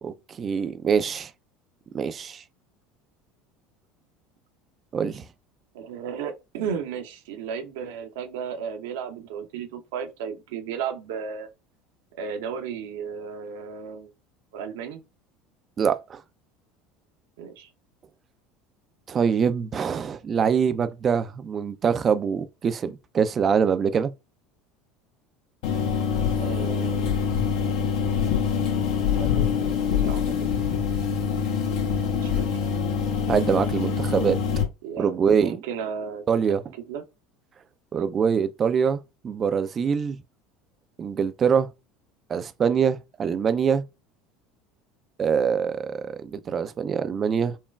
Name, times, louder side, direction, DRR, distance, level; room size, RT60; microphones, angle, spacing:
voice 1, 0.0-1.3 1.9-2.4 4.9-5.2 15.8-16.2 19.1-24.1 33.3-34.4 35.0-35.6 36.3-36.6 37.9-40.2 41.0-41.7 42.3-43.8 45.2-47.5, right 7 dB, 35° right, 0.4 m, -24 dB
voice 2, 5.7-11.5 12.2-14.1 14.5-15.0 17.4-17.7 26.4-27.1 29.2-30.3 32.2-32.5 34.8-36.2 36.9-37.0, right 7 dB, 70° right, 0.7 m, -34 dB
sound 1, 25.6-34.6, left 6 dB, 65° left, 1.2 m, -25 dB
5.5 x 2.2 x 2.2 m
hypercardioid pair, 70°, 0 cm